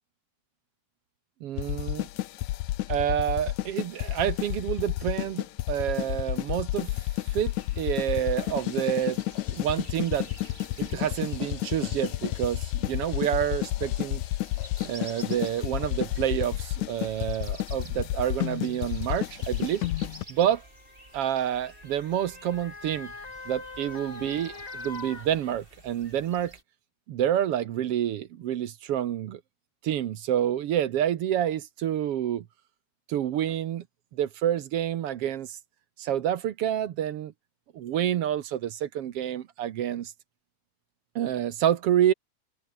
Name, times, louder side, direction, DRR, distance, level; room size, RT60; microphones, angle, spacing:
voice 1, 1.4-2.1 2.9-6.9 7.3-9.2 9.5-10.3 10.8-14.2 14.8-19.8 20.3-20.6 21.1-23.1 23.5-26.5 27.1-29.4 29.8-32.4 33.1-33.8 34.1-35.6 36.0-37.3 37.7-40.1 41.2-42.1, right 10 dB, 65° right, 1.8 m, -28 dB
sound 1, 1.6-20.2, left 16 dB, 90° left, 2.2 m, -31 dB
sound 2, 7.3-26.6, right 2 dB, 15° right, 4.3 m, -51 dB
Motor vehicle (road) / Siren, 17.1-17.3 18.4-26.0 26.4-26.5, left 3 dB, 70° left, 8.0 m, -45 dB
omnidirectional pair, 3.3 m